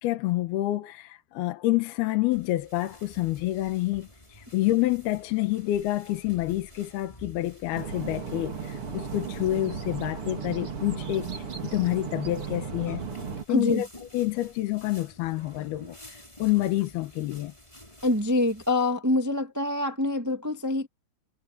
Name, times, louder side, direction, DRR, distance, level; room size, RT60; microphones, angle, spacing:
voice 1, 0.0-13.0 13.5-13.9 14.1-17.5, left 16 dB, 75° left, 2.9 m, -28 dB
sound 1, 2.3-18.7, left 1 dB, 10° left, 6.4 m, -51 dB
sound 2, 7.7-13.4, right 5 dB, 35° right, 3.1 m, -35 dB
voice 2, 13.5-13.8 18.0-20.9, left 2 dB, 15° right, 0.6 m, -25 dB
omnidirectional pair, 4.8 m